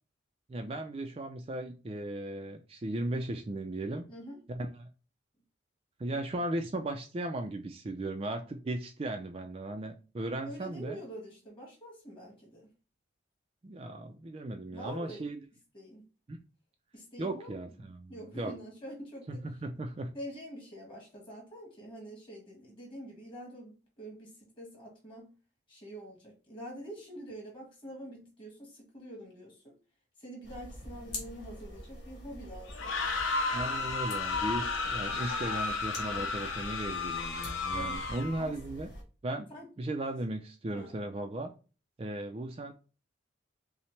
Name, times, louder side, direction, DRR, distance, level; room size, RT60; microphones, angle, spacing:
voice 1, 0.5-4.1 4.5-4.9 6.0-11.0 13.6-15.4 16.3-16.4 17.2-18.5 19.3-20.1 33.5-38.9 39.2-39.5 39.8-41.5 42.0-42.7, right 1 dB, 30° right, 0.3 m, -36 dB
voice 2, 4.1-4.4 10.4-12.7 14.7-15.2 15.7-16.0 16.9-17.6 18.1-19.4 20.1-25.3 25.7-29.7 30.2-33.0 36.0-36.5 37.7-38.0 38.4-38.5 39.5-39.7 40.7-41.0, equal, 25° left, 1.6 m, -46 dB
sound 1, 30.4-39.0, left 1 dB, 60° left, 1.6 m, -45 dB
sound 2, 32.7-38.4, left 4 dB, 85° left, 0.7 m, -33 dB
5.6 x 2.1 x 3.2 m
head